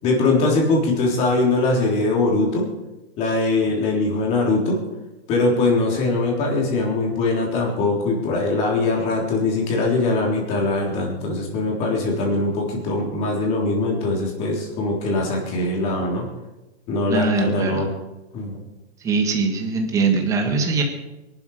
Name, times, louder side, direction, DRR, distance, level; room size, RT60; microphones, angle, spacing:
voice 1, 0.0-2.7 3.2-4.8 5.3-16.3 16.9-17.9 18.3-18.6, left 2 dB, 20° left, -1 dB, 3.7 m, -21 dB
voice 2, 17.1-17.9 19.0-20.8, right 4 dB, 10° right, 3 dB, 1.6 m, -21 dB
23.5 x 12.0 x 5.0 m, 1.1 s
hypercardioid pair, 175°, 32 cm